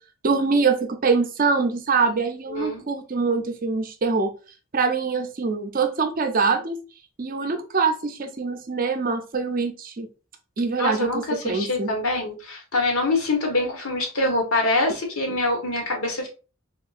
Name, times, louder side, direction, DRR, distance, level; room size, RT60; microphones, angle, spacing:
voice 1, 0.2-4.3 4.7-6.8 7.2-10.1 10.6-11.9, right 4 dB, 40° right, 7 dB, 0.5 m, -24 dB
voice 2, 2.5-2.8 10.8-16.3, left 2 dB, 85° left, 2 dB, 1.1 m, -25 dB
3.6 x 2.7 x 2.4 m, 0.34 s
head